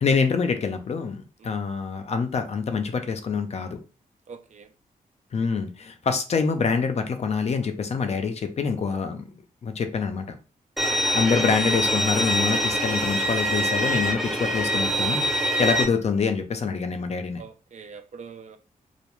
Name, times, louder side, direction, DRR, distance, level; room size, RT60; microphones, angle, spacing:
voice 1, 0.0-3.8 5.3-9.2 9.6-10.4 11.1-17.4, left 5 dB, 45° left, 0.5 m, -26 dB
voice 2, 4.3-4.7 10.8-11.0 15.6-15.7 17.4-18.6, right 6 dB, 50° right, 0.5 m, -43 dB
Bowed string instrument, 10.8-15.8, equal, ahead, 0.6 m, -24 dB
2.3 x 2.2 x 3.0 m
cardioid pair, 90°, 15 cm